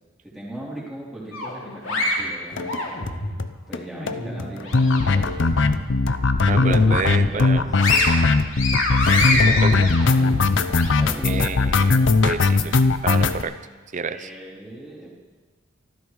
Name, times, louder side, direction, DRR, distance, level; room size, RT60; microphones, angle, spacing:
voice 1, 0.2-2.9 3.7-5.5 6.5-7.6 8.9-9.9 10.9-11.5 14.0-15.1, right 1 dB, ahead, -7 dB, 3.4 m, -38 dB
sound 1, 1.3-3.4 3.8-5.3 5.6-5.8 6.2-7.0 7.4-10.9, left 2 dB, 80° left, 2.7 m, -25 dB
sound 2, 2.6-2.8 3.1-3.2 3.4-3.5 3.7-3.8 4.1-13.4, left 3 dB, 65° left, 0.7 m, -19 dB
voice 2, 6.5-7.6 9.6-9.9 11.2-13.5 13.9-14.3, right 4 dB, 40° right, 12 dB, 0.5 m, -29 dB
24.5 x 14.0 x 3.2 m, 1.4 s
head